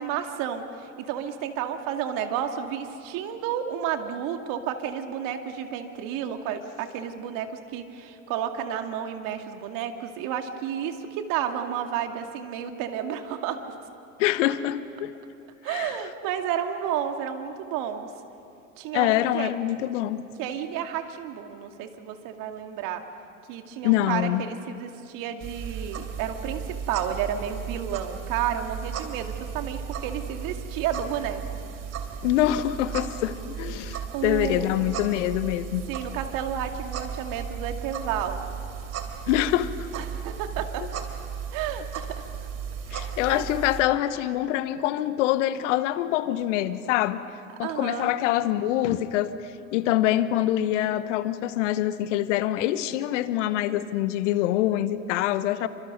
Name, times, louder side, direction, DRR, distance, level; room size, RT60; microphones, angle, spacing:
voice 1, 0.0-13.6 15.6-18.1 18.8-19.5 20.4-23.0 23.5-31.4 34.1-34.7 35.9-38.6 39.9-40.8 41.5-42.3 42.9-43.4 47.6-48.1, right 9 dB, 55° right, 2.4 m, -31 dB
voice 2, 14.2-15.1 15.7-15.9 18.9-20.2 23.8-24.4 32.2-35.8 39.3-39.9 40.8-40.9 42.9-47.2 47.6-55.7, left 13 dB, 65° left, 1.2 m, -25 dB
sound 1, 25.4-43.8, right 7 dB, 40° right, 3.3 m, -35 dB
30.0 x 25.0 x 5.4 m
hypercardioid pair, 80°, 39 cm